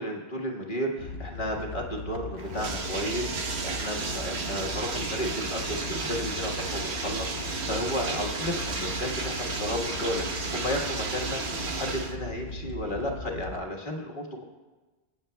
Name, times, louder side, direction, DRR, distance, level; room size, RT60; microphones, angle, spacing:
voice 1, 0.0-11.4 11.7-14.4, equal, 50° left, 0 dB, 1.6 m, -33 dB
sound 1, 1.0-13.6, left 3 dB, 75° left, 0.9 m, -39 dB
Bathtub (filling or washing), 2.4-12.1, right 4 dB, 85° right, 1.2 m, -33 dB
24.5 x 8.9 x 2.2 m, 1.3 s
omnidirectional pair, 1.1 m